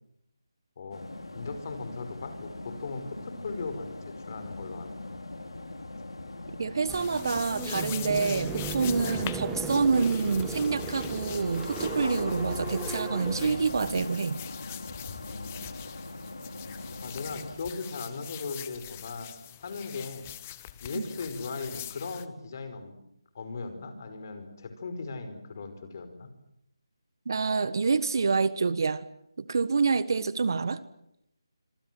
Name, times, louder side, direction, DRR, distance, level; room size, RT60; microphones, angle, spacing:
sound 1, 0.9-17.5, left 2 dB, 85° left, 5.1 m, -40 dB
voice 1, 1.3-5.2 15.0-15.6 17.0-19.3 19.6-20.3 20.8-23.0 23.3-26.3, left 4 dB, 40° left, 9 dB, 5.3 m, -38 dB
voice 2, 6.6-14.4 20.9-21.0 27.2-29.0 29.4-30.8, right 4 dB, 50° right, 16 dB, 1.4 m, -27 dB
sound 2, 6.9-22.3, left 12 dB, 20° left, 1.1 m, -43 dB
sound 3, 6.9-14.0, right 4 dB, 5° right, 1.7 m, -37 dB
26.5 x 25.0 x 7.8 m, 0.76 s
figure-of-eight pair, 165°, 3 cm